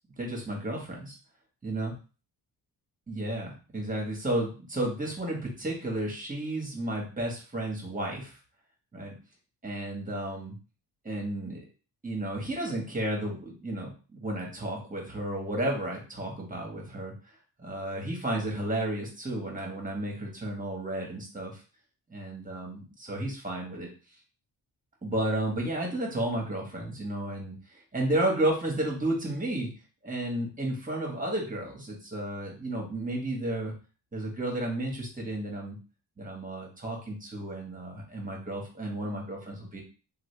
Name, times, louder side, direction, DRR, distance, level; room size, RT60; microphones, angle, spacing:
voice 1, 0.2-1.2 1.6-1.9 3.1-8.3 8.9-9.2 9.6-10.6 11.0-11.6 12.0-17.1 17.6-21.6 22.1-23.9 25.0-27.6 27.9-29.7 30.0-33.7 34.1-35.8 36.2-39.8, right 1 dB, 20° right, -1 dB, 1.5 m, -32 dB
3.4 x 2.4 x 3.3 m, 0.35 s
cardioid pair, 80°, 43 cm